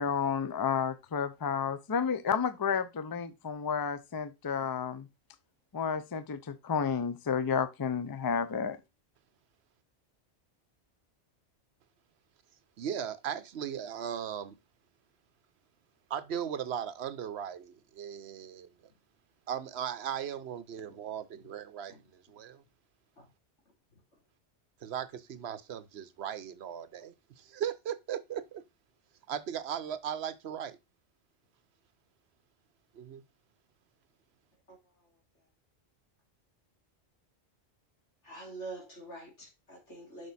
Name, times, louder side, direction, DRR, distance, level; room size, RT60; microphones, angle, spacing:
voice 1, 0.0-5.1 5.7-8.8, left 6 dB, 30° left, 0.4 m, -31 dB
voice 2, 12.8-14.6 16.1-18.7 19.5-22.6 24.8-28.6 29.3-30.8 32.9-33.2, right 9 dB, 70° right, 0.9 m, -37 dB
voice 3, 38.2-40.3, right 2 dB, 90° left, 3.1 m, -45 dB
6.3 x 5.2 x 4.0 m
omnidirectional pair, 1.2 m